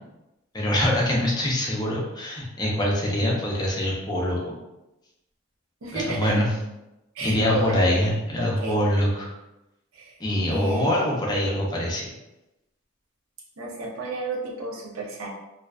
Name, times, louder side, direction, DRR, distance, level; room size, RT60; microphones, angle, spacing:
voice 1, 0.5-4.4 5.9-6.5 7.2-9.3 10.2-12.1, left 1 dB, 20° left, -3 dB, 0.4 m, -24 dB
voice 2, 5.8-6.4 7.1-8.0 8.4-8.8 9.9-10.2 10.5-11.0 13.6-15.3, right 2 dB, 80° right, -2 dB, 0.6 m, -32 dB
2.4 x 2.2 x 2.3 m, 0.96 s
head